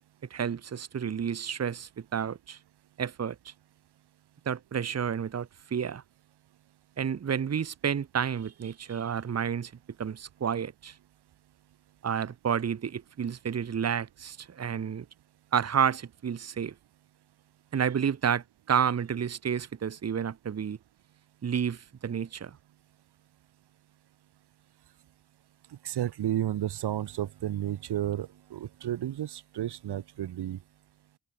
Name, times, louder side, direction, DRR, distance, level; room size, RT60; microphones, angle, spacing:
voice 1, 0.3-2.6 3.0-3.5 4.4-6.0 7.0-9.7 10.0-11.0 12.0-15.0 15.5-16.7 17.7-20.8 21.4-22.6, right 7 dB, 40° right, 1.8 m, -30 dB
voice 2, 25.8-30.6, right 12 dB, 80° right, 2.3 m, -32 dB
wide cardioid pair, 140°, 39 cm